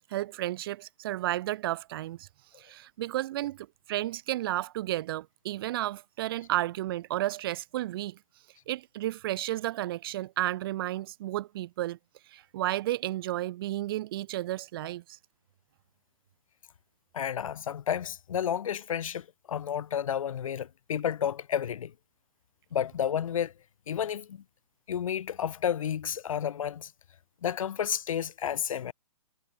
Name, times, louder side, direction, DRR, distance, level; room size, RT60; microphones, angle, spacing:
voice 1, 0.1-2.3 2.6-8.2 8.7-12.0 12.3-15.2, right 15 dB, 35° right, 1.2 m, -32 dB
voice 2, 17.1-21.9 22.7-23.5 23.9-24.4 24.9-26.9 27.4-28.9, left 9 dB, 55° left, 5.5 m, -31 dB
hypercardioid pair, 145°, 21 cm